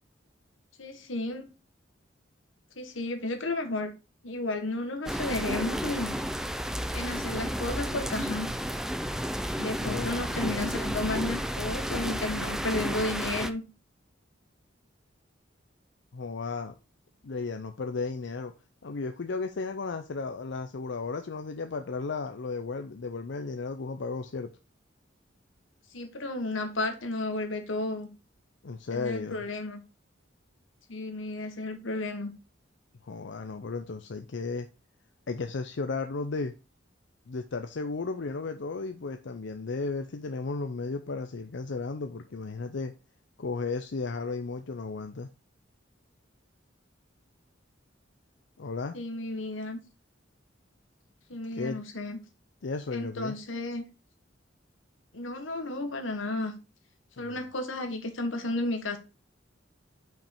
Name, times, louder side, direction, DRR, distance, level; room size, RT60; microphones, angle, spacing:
voice 1, 0.8-1.5 2.8-3.9 4.2-6.2 6.9-8.5 9.6-13.6 25.9-28.1 28.9-29.8 30.9-32.3 48.9-49.8 51.3-52.2 52.9-53.8 55.1-56.5 57.2-59.0, left 2 dB, 90° left, 1.4 m, -33 dB
sound 1, 5.1-13.5, equal, 5° right, 0.4 m, -32 dB
voice 2, 9.8-10.2 16.1-16.7 17.2-18.5 18.8-24.5 28.6-29.4 33.0-34.7 35.3-36.5 37.3-42.9 43.4-45.3 48.6-49.0 51.5-51.8 52.6-53.4 57.2-57.4, left 4 dB, 65° left, 0.6 m, -34 dB
5.8 x 5.2 x 4.4 m
head